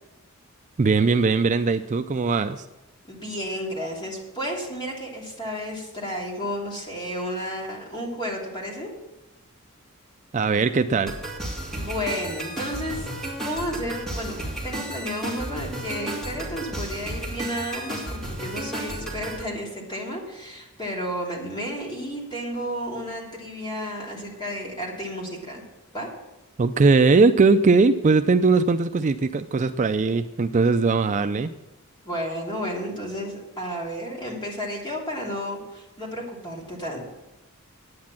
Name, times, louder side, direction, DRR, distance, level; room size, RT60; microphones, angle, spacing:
voice 1, 0.8-2.7 10.3-11.1 26.6-31.5, right 4 dB, 35° right, 9 dB, 0.4 m, -20 dB
voice 2, 3.1-8.9 11.7-13.1 13.4-25.6 25.9-26.1 32.0-37.0, equal, 20° left, -2 dB, 3.0 m, -32 dB
sound 1, 11.1-19.4, right 1 dB, ahead, 2.5 m, -33 dB
9.6 x 9.4 x 7.3 m, 0.98 s
head